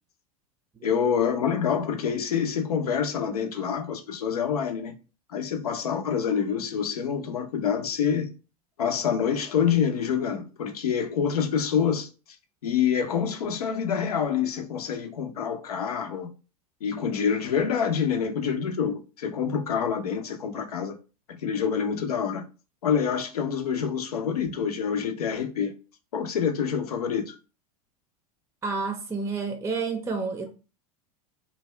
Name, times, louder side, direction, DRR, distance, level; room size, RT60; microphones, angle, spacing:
voice 1, 0.8-4.9 5.3-8.3 8.8-12.1 12.6-16.3 16.8-21.0 21.3-22.4 22.8-25.7 26.1-27.3, left 7 dB, 80° left, 0.7 m, -26 dB
voice 2, 28.6-30.5, right 4 dB, 15° right, 0.5 m, -30 dB
2.7 x 2.2 x 3.2 m
hypercardioid pair, 90°, 19 cm